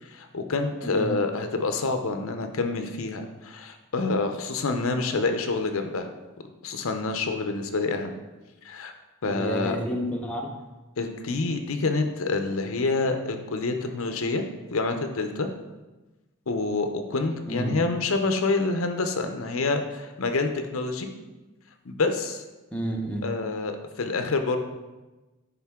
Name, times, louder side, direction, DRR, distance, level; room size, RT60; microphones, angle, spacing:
voice 1, 0.0-6.1 6.6-8.1 8.6-8.9 9.2-9.8 11.0-14.4 14.7-15.5 16.5-21.1 21.8-22.4 23.2-24.6, left 3 dB, 65° left, 6 dB, 0.6 m, -27 dB
voice 2, 9.3-10.5 17.5-17.8 22.7-23.2, right 1 dB, 5° left, 0 dB, 0.7 m, -30 dB
10.5 x 3.8 x 3.6 m, 1.1 s
head